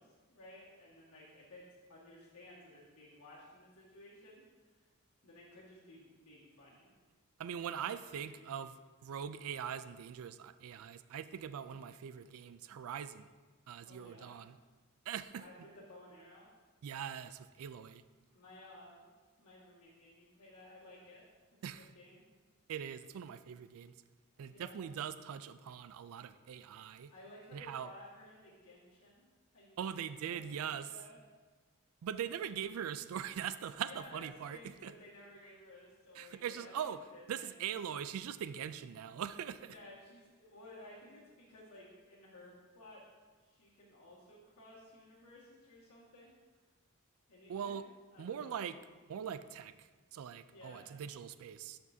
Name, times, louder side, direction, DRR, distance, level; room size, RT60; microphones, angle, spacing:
voice 1, 0.0-4.4 4.7-4.9 5.2-6.9 8.0-8.5 13.8-14.3 15.4-16.5 18.3-19.1 19.4-21.3 21.8-22.2 24.4-24.9 27.1-29.3 29.5-31.2 33.8-37.5 39.7-43.1 43.4-46.6 47.3-47.8 48.1-48.6 50.5-50.9, left 1 dB, 90° left, -9 dB, 1.9 m, -56 dB
voice 2, 7.4-13.3 13.7-14.5 15.1-15.4 16.8-18.0 21.6-21.9 22.7-23.9 24.4-27.1 27.5-27.9 29.8-30.9 32.0-34.9 36.2-37.0 37.3-39.7 47.5-47.9 48.2-48.8 49.1-51.8, right 8 dB, 65° right, 13 dB, 0.3 m, -42 dB
12.0 x 5.2 x 2.7 m, 1.3 s
head